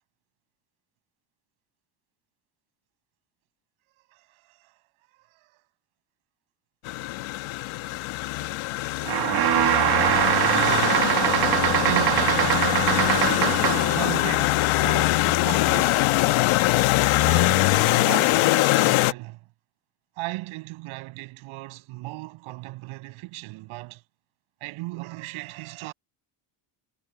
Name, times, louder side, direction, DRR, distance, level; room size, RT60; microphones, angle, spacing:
voice 1, 4.1-4.7 5.2-5.5 11.8-12.7 13.8-16.2 17.1-19.4 20.2-24.0 24.6-25.9, right 21 dB, 80° right, 6.8 m, -36 dB
sound 1, 6.8-19.1, left 19 dB, 75° left, 1.2 m, -23 dB
sound 2, 9.0-14.0, right 11 dB, 50° right, 1.7 m, -22 dB
supercardioid pair, 90°, 48 cm